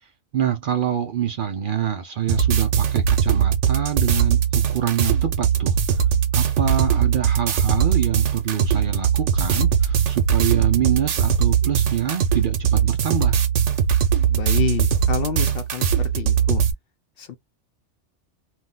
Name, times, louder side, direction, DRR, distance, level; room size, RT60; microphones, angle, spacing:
voice 1, 0.3-5.8 6.3-13.4, right 9 dB, 60° right, 0.6 m, -26 dB
sound 1, 2.3-16.7, right 8 dB, 80° right, 1.0 m, -20 dB
voice 2, 14.3-16.6 17.2-17.4, left 9 dB, 60° left, 0.7 m, -28 dB
2.8 x 2.0 x 3.7 m
omnidirectional pair, 1.2 m